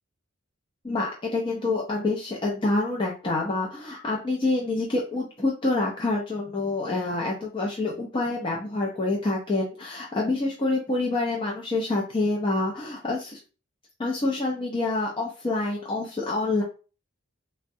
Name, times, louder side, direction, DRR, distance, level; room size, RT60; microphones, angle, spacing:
voice 1, 0.8-13.4 14.0-16.6, left 2 dB, 25° left, -2 dB, 0.4 m, -27 dB
3.4 x 2.1 x 2.7 m, 0.35 s
head